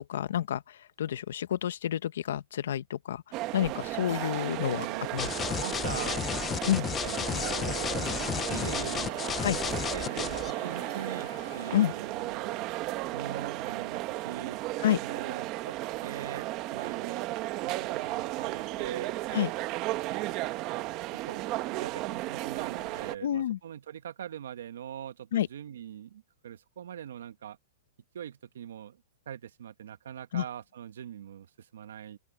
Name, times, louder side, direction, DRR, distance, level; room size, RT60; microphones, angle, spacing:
voice 1, 0.0-3.2 3.5-4.9 5.1-5.3 6.7-6.8 9.4-9.6 11.7-11.9 14.8-15.0 19.3-19.5 23.2-23.6 25.3-25.5 30.3-30.4, left 11 dB, 65° left, 1.1 m, -29 dB
sound 1, 3.3-23.2, right 18 dB, 25° right, 0.9 m, -34 dB
voice 2, 4.7-5.1 5.6-6.2 6.6-6.7 7.0-8.0 8.3-9.1 9.6-12.7 13.1-14.6 15.0-15.8 16.0-17.4 17.6-19.5 19.9-20.4 21.2-27.6 28.1-32.2, right 9 dB, 70° right, 1.2 m, -42 dB
sound 2, 5.2-10.5, left 8 dB, 15° left, 0.5 m, -33 dB
Race car auto racing / Accelerating revving vroom, 7.0-12.5, left 9 dB, 85° left, 7.2 m, -48 dB
open air
hypercardioid pair, 170°, 0 cm